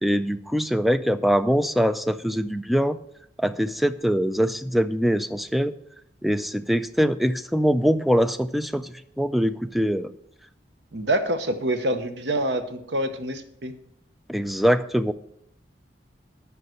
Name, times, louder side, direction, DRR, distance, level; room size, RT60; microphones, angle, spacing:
voice 1, 0.0-3.0 3.4-5.7 6.2-10.1 14.3-15.1, equal, ahead, 12 dB, 0.3 m, -23 dB
voice 2, 10.9-13.7, right 1 dB, 70° right, 9 dB, 0.9 m, -26 dB
9.4 x 5.6 x 6.3 m, 0.75 s
head